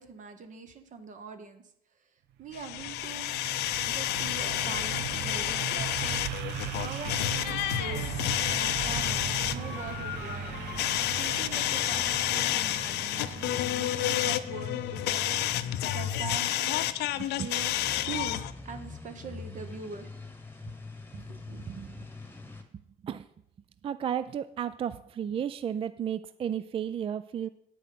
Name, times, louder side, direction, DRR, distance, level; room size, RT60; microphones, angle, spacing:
voice 1, 0.0-1.6 2.4-3.3 3.8-8.0 8.5-10.6 11.1-16.9 17.3-17.8 18.0-20.1 21.3-21.4 22.0-22.1, right 5 dB, 50° right, 8 dB, 1.2 m, -43 dB
sound 1, 2.4-14.1, right 9 dB, 90° right, 0.8 m, -38 dB
sound 2, 2.5-18.5, left 13 dB, 80° left, 0.6 m, -30 dB
sound 3, 8.8-22.6, left 2 dB, 15° left, 1.2 m, -45 dB
voice 2, 17.2-17.5 21.1-21.9 22.7-23.3 23.8-27.5, right 9 dB, 35° right, 14 dB, 0.4 m, -34 dB
9.2 x 7.2 x 5.9 m, 0.73 s
cardioid pair, 110°, 17 cm